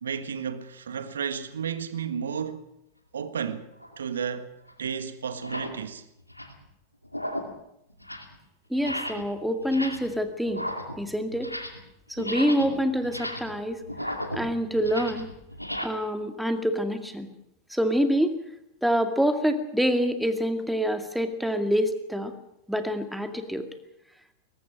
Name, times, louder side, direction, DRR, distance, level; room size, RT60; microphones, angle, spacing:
voice 1, 0.0-2.7 3.1-3.7 4.0-4.5 4.8-6.0, right 7 dB, 70° right, 1.5 m, -32 dB
sound 1, 3.8-4.0 4.7-4.8 5.3-5.8 6.2-6.6 7.0-7.6 7.9-8.4 8.8-9.3 9.6-10.2 10.5-11.9 12.1-15.8, left 1 dB, 90° left, 2.4 m, -35 dB
voice 2, 8.7-10.6 11.0-11.5 12.1-13.8 14.3-15.3 15.8-17.3 17.7-18.3 18.8-22.3 22.7-23.7, equal, ahead, 2.1 m, -26 dB
22.0 x 19.0 x 6.3 m
figure-of-eight pair, 90°, 0 cm